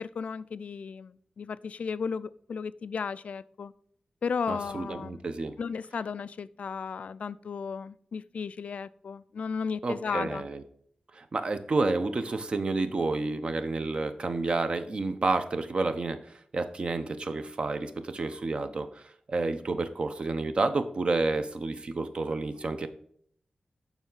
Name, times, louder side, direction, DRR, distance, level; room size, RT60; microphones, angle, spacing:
voice 1, 0.0-3.7 4.2-5.3 5.6-10.5, left 5 dB, 70° left, 0.3 m, -34 dB
voice 2, 4.5-5.5 9.8-10.6 11.1-19.0 19.3-22.9, right 3 dB, 45° right, 0.7 m, -30 dB
7.1 x 5.6 x 3.9 m
wide cardioid pair, 110°, 2 cm